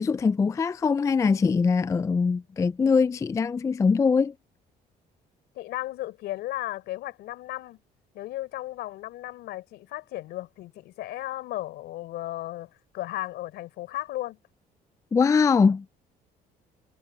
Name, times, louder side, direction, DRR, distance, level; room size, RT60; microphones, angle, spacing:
voice 1, 0.0-4.3 15.1-15.8, left 5 dB, 20° left, 0.3 m, -22 dB
voice 2, 5.5-7.8 8.1-14.4, left 16 dB, 80° left, 4.4 m, -35 dB
cardioid pair, 110°, 17 cm